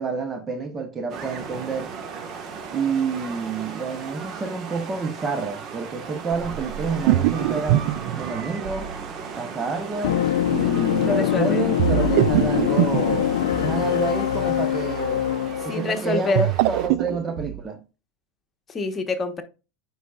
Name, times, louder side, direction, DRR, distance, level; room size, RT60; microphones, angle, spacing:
voice 1, 0.0-1.9 2.7-7.8 8.1-8.9 9.4-13.3 13.6-15.2 15.6-17.8, right 4 dB, 25° right, 1.1 m, -28 dB
sound 1, 1.1-16.9, right 5 dB, 40° right, 1.5 m, -37 dB
sound 2, 6.3-9.1 11.8-13.8 16.2-17.6, right 15 dB, 65° right, 0.3 m, -24 dB
sound 3, 10.0-15.8, left 11 dB, 75° left, 0.4 m, -23 dB
voice 2, 11.0-11.7 15.7-16.5 18.7-19.4, left 3 dB, 25° left, 1.3 m, -26 dB
9.2 x 4.2 x 2.4 m
hypercardioid pair, 100°, 0 cm